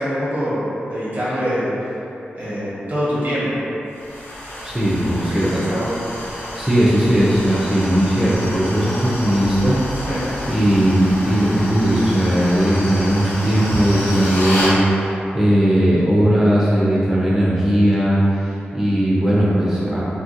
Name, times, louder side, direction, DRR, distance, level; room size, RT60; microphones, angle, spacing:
voice 1, 0.0-1.7 2.3-3.6 5.2-5.9 10.1-10.3, equal, 55° right, -10 dB, 1.2 m, -24 dB
sound 1, 3.9-14.8, left 1 dB, 75° left, 0.7 m, -29 dB
voice 2, 4.6-5.5 6.4-9.8 10.4-20.0, right 1 dB, 10° right, -8 dB, 0.4 m, -18 dB
2.8 x 2.5 x 2.7 m, 2.9 s
cardioid pair, 70°, 4 cm